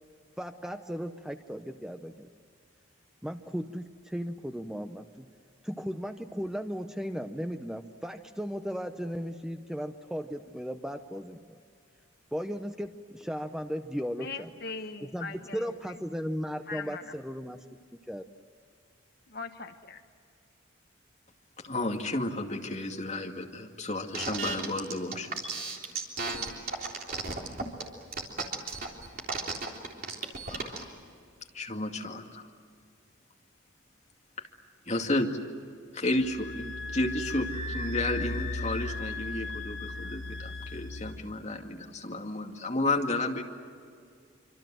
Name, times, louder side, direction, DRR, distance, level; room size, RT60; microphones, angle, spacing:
voice 1, 0.4-2.3 3.2-5.3 5.6-11.6 12.3-14.5 15.0-17.6 18.1-18.2, equal, 5° right, 6 dB, 0.7 m, -36 dB
voice 2, 14.2-15.9 16.7-17.1 19.3-20.0, left 4 dB, 50° left, 6 dB, 1.2 m, -40 dB
voice 3, 21.6-25.6 27.6-27.7 30.5-30.8 31.5-32.5 34.4-34.5 34.9-35.3 35.9-43.4, left 2 dB, 35° left, 2 dB, 2.3 m, -32 dB
sound 1, 24.1-30.8, right 4 dB, 45° right, 3.6 m, -34 dB
sound 2, 36.1-41.1, left 2 dB, 75° left, 3.5 m, -36 dB
26.0 x 26.0 x 7.6 m, 2.2 s
head